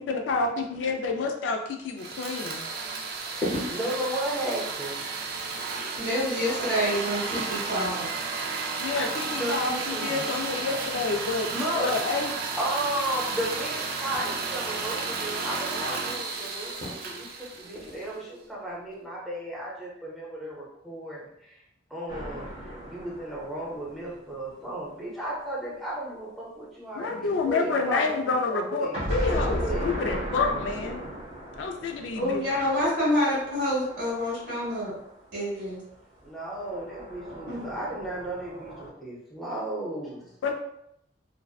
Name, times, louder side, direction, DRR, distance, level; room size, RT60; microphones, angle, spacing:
voice 1, 0.0-2.7 8.8-12.3 26.9-31.0 31.6-32.4 40.4-40.5, left 4 dB, 70° left, 4 dB, 0.3 m, -28 dB
sound 1, 2.0-18.2, right 4 dB, 55° right, 0.3 m, -33 dB
sound 2, 2.6-18.1, left 1 dB, 40° left, 0.7 m, -42 dB
voice 2, 3.3-5.0 9.3-10.3 11.2-21.6 21.9-28.9 29.6-29.9 36.2-40.3, right 1 dB, ahead, -6 dB, 0.6 m, -34 dB
voice 3, 6.0-8.1 32.1-35.0 35.3-35.8 37.5-37.6, equal, 90° right, -9 dB, 1.0 m, -27 dB
sound 3, 22.1-24.9 28.9-35.2 36.5-38.9, equal, 30° right, 0.8 m, -36 dB
2.5 x 2.1 x 2.3 m, 0.78 s
head